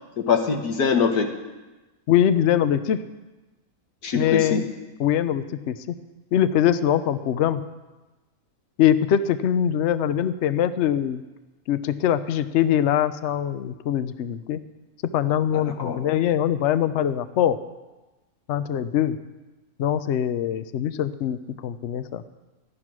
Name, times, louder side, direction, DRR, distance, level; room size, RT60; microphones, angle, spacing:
voice 1, 0.2-1.3 4.0-4.6 15.5-16.0, left 6 dB, 85° left, 4 dB, 1.8 m, -23 dB
voice 2, 2.1-3.0 4.1-4.6 5.0-5.9 6.3-7.6 8.8-11.2 11.7-14.6 15.1-17.6 18.5-19.2 19.8-22.2, left 10 dB, 60° left, 12 dB, 0.8 m, -22 dB
13.0 x 11.0 x 6.1 m, 1.1 s
omnidirectional pair, 1.6 m